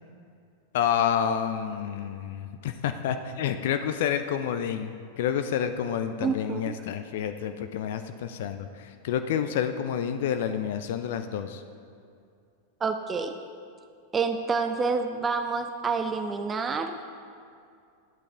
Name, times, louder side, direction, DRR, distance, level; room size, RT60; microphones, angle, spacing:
voice 1, 0.7-4.9 5.2-11.6, left 8 dB, 55° left, 9 dB, 0.4 m, -29 dB
voice 2, 6.2-6.8 12.8-13.4 14.1-17.0, right 4 dB, 20° right, 7 dB, 0.5 m, -28 dB
12.0 x 8.3 x 3.7 m, 2.4 s
figure-of-eight pair, 90°, 0 cm